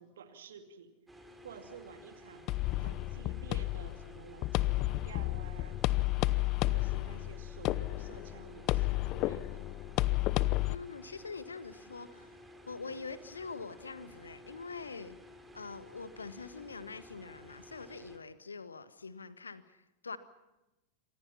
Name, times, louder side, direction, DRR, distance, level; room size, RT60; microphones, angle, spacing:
voice 1, 0.0-9.7, right 6 dB, 60° right, 8 dB, 2.4 m, -52 dB
sound 1, 1.1-18.2, left 1 dB, 5° right, 4.7 m, -54 dB
sound 2, 2.5-10.7, left 18 dB, 40° left, 0.8 m, -32 dB
voice 2, 10.7-12.3 12.7-15.2 15.5-19.8 20.0-20.2, left 4 dB, 75° left, 13 dB, 1.7 m, -44 dB
28.5 x 25.0 x 5.8 m, 1.0 s
figure-of-eight pair, 90°, 0 cm